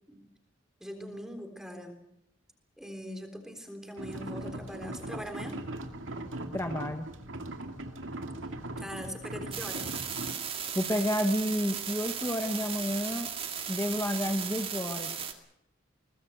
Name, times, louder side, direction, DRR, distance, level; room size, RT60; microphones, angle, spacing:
voice 1, 0.8-2.0 2.8-5.6 8.8-10.0, equal, 5° right, 5 dB, 3.5 m, -41 dB
sound 1, 4.0-10.3, right 1 dB, 90° right, 2.3 m, -39 dB
voice 2, 6.5-7.1 10.7-13.3 13.7-15.1, equal, 15° left, 5 dB, 1.2 m, -30 dB
sound 2, 9.5-15.3, right 7 dB, 30° right, 2.2 m, -36 dB
22.5 x 19.5 x 7.8 m, 0.77 s
head